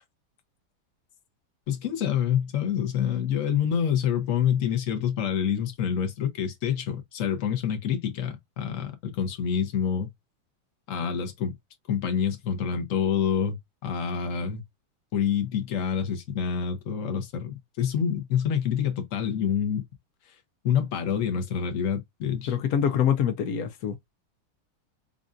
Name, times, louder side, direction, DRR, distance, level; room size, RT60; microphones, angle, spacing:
voice 1, 1.7-10.1 10.9-11.5 11.9-14.6 15.1-19.8 20.6-22.6, left 8 dB, 55° left, 0.9 m, -27 dB
voice 2, 22.5-24.1, left 8 dB, 85° left, 0.8 m, -25 dB
5.3 x 2.4 x 2.4 m
omnidirectional pair, 2.3 m